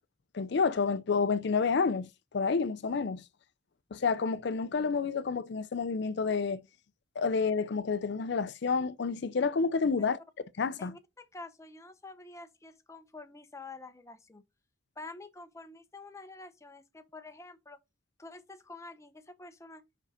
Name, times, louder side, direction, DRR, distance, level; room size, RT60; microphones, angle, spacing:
voice 1, 0.3-2.1 2.3-3.2 3.9-6.6 7.2-10.2 10.6-10.9, left 5 dB, 60° left, 0.5 m, -29 dB
voice 2, 10.8-14.4 15.0-17.8 18.2-19.8, left 3 dB, 15° left, 0.7 m, -48 dB
5.4 x 4.9 x 5.0 m
head